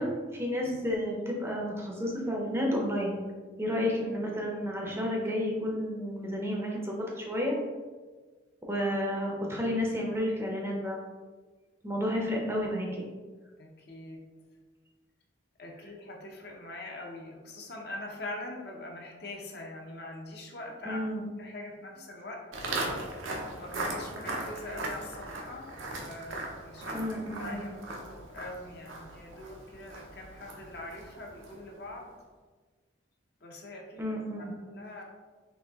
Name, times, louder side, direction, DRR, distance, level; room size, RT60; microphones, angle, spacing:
voice 1, 0.0-3.2 3.6-7.6 8.7-11.0 11.8-13.0 20.9-21.2 26.9-27.6 34.0-34.5, equal, 15° right, -1 dB, 0.5 m, -31 dB
voice 2, 13.6-14.3 15.6-21.1 21.3-22.7 23.5-27.1 27.4-32.1 33.4-35.0, left 1 dB, 55° left, 0 dB, 0.6 m, -43 dB
Walk footsteps, 22.5-31.7, right 2 dB, 85° right, 0.7 m, -38 dB
4.1 x 2.7 x 3.5 m, 1.4 s
head